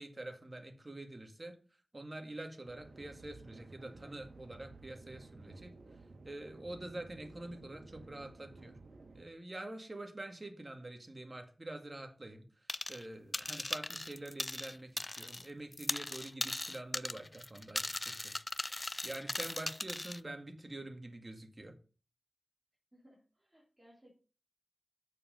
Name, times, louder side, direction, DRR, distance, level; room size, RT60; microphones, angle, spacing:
voice 1, 0.0-1.5 1.9-5.7 6.2-8.8 9.1-12.4 12.9-18.3 19.0-21.7, right 1 dB, 35° right, 4 dB, 2.0 m, -46 dB
sound 1, 2.7-9.2, right 3 dB, 80° right, 1.8 m, -54 dB
sound 2, 12.7-13.1 13.3-15.5 15.7-20.2, left 2 dB, 30° left, 0.4 m, -39 dB
voice 2, 22.9-24.1, equal, 20° right, -4 dB, 3.2 m, -63 dB
7.6 x 6.8 x 5.2 m, 0.37 s
wide cardioid pair, 60°, 0 cm